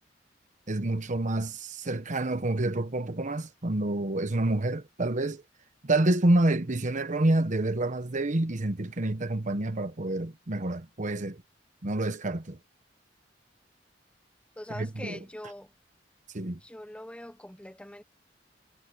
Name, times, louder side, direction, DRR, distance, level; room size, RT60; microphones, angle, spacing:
voice 1, 0.7-5.4 5.8-11.4 11.8-12.6 14.7-15.2 16.3-16.6, right 2 dB, 45° right, 1.1 m, -28 dB
voice 2, 14.6-15.7 16.6-18.0, left 1 dB, 5° left, 1.3 m, -43 dB
head